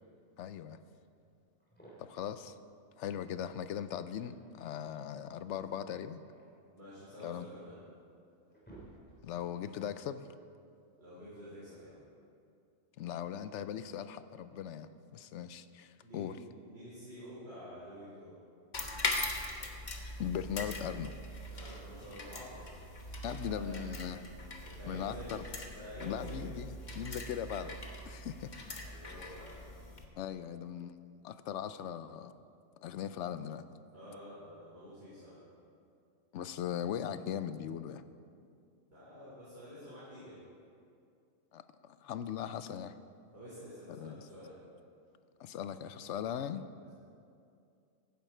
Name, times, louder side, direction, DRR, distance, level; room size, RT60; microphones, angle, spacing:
voice 1, 0.4-0.8 2.0-2.5 3.0-6.2 7.2-7.5 9.2-10.3 13.0-16.4 20.2-21.2 23.2-24.3 24.9-25.4 26.0-27.8 28.1-28.5 29.2-29.3 30.2-32.3 32.8-33.6 36.3-38.0 41.5-41.6 42.0-43.0 43.9-44.2 45.4-46.7, left 9 dB, 70° left, 12 dB, 0.8 m, -39 dB
sound 1, 1.6-2.3 3.8-4.6 5.9-7.3 7.9-8.0 8.3-9.5, right 2 dB, 5° left, 3.3 m, -57 dB
voice 2, 6.7-7.8 11.0-12.0 16.0-18.3 21.5-22.7 23.2-23.9 24.6-25.2 25.6-26.5 28.8-29.6 33.9-35.4 38.9-40.4 43.3-44.5 46.8-46.9, equal, 50° right, -11 dB, 4.1 m, -49 dB
sound 2, 18.7-30.1, left 2 dB, 40° left, 1.2 m, -41 dB
15.5 x 11.5 x 4.4 m, 2.5 s
omnidirectional pair, 1.3 m